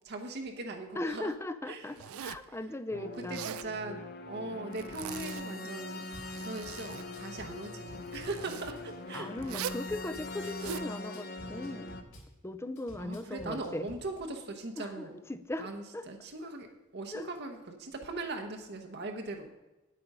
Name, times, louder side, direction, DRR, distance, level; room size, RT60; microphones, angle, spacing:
voice 1, 0.0-1.3 1.7-2.2 2.9-6.1 6.4-9.3 13.0-15.2 15.6-16.7 16.9-19.5, right 2 dB, 50° right, 3 dB, 0.9 m, -40 dB
voice 2, 1.0-3.4 9.1-11.9 12.4-13.9 14.8-16.0 17.1-17.3, left 2 dB, 10° left, 11 dB, 0.5 m, -38 dB
Zipper (clothing), 2.0-2.5 3.2-3.7 4.7-5.5 6.1-7.1 8.1-8.7 9.4-9.9 10.4-10.9, right 9 dB, 85° right, 0.4 m, -41 dB
sound 1, 2.9-12.0, left 2 dB, 50° left, 0.9 m, -42 dB
Drum kit / Bass drum, 6.1-6.3 6.6-8.3 8.6-10.3 10.6-12.3 12.8-14.0, equal, 80° left, 3.8 m, -51 dB
9.3 x 8.4 x 5.4 m, 1.1 s
head